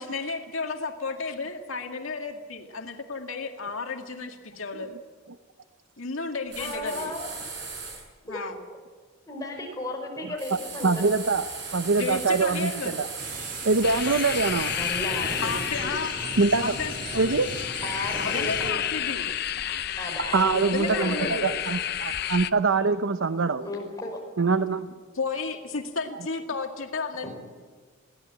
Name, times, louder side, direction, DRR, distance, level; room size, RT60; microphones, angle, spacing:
voice 1, 0.0-4.9 6.0-7.1 8.2-8.6 11.9-13.0 15.4-16.2 16.6-16.9 18.2-19.3 20.7-21.6 25.1-27.3, left 4 dB, 85° left, 3 dB, 2.0 m, -32 dB
sound 1, 6.5-8.0 10.4-15.8, right 4 dB, 55° right, 7.2 m, -38 dB
voice 2, 6.6-7.3 8.3-8.4 9.2-11.3 14.7-16.0 17.8-18.8 20.0-21.5 23.6-24.2 27.2-27.3, left 1 dB, 15° left, 1 dB, 5.1 m, -34 dB
voice 3, 10.8-11.4 11.7-13.1 13.6-14.7 16.4-16.7 17.1-17.5 20.3-23.7 24.4-24.9, right 4 dB, 70° right, 11 dB, 0.8 m, -24 dB
sound 2, 13.2-18.7, right 2 dB, 40° right, 2.0 m, -38 dB
sound 3, 13.8-22.5, left 11 dB, 50° left, 0.7 m, -31 dB
22.0 x 16.5 x 8.9 m, 1.5 s
head